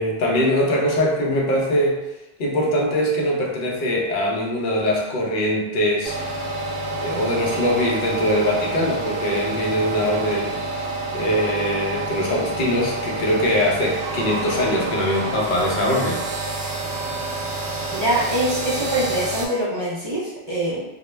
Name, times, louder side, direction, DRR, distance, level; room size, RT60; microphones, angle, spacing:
voice 1, 0.0-2.0 2.4-6.2 7.0-10.6 11.1-16.2, equal, 60° left, -2 dB, 0.7 m, -22 dB
sound 1, 6.0-19.5, right 2 dB, 70° right, 0.8 m, -28 dB
voice 2, 17.9-20.8, right 1 dB, 45° right, -7 dB, 0.3 m, -24 dB
2.2 x 2.0 x 3.1 m, 1.0 s
omnidirectional pair, 1.0 m